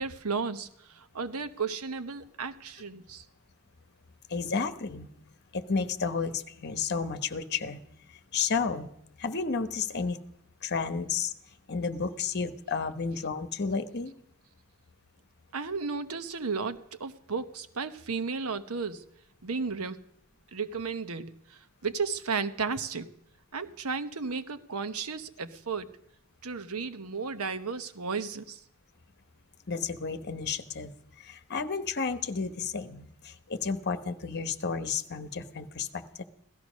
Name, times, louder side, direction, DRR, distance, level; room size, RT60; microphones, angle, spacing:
voice 1, 0.0-3.2 15.5-19.1 19.4-20.0 20.5-23.1 23.5-25.9 26.4-28.6, right 5 dB, 75° right, 11 dB, 1.0 m, -34 dB
voice 2, 4.3-5.1 5.5-7.8 8.3-8.9 9.2-10.2 10.6-11.3 11.7-14.1 29.7-36.2, left 5 dB, 50° left, 10 dB, 1.1 m, -32 dB
16.5 x 13.5 x 6.3 m, 0.75 s
head